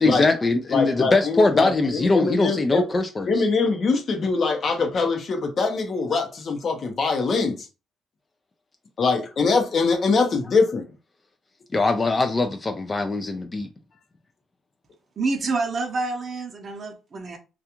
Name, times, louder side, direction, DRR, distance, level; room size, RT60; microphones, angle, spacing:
voice 1, 0.0-3.5 11.7-13.7, left 3 dB, 30° left, 0.3 m, -22 dB
voice 2, 0.7-2.9 3.3-7.7 9.0-10.8, left 4 dB, 50° left, 0.7 m, -23 dB
voice 3, 15.2-17.4, right 3 dB, 45° right, 0.6 m, -27 dB
2.3 x 2.3 x 2.9 m
cardioid pair, 90°, 0 cm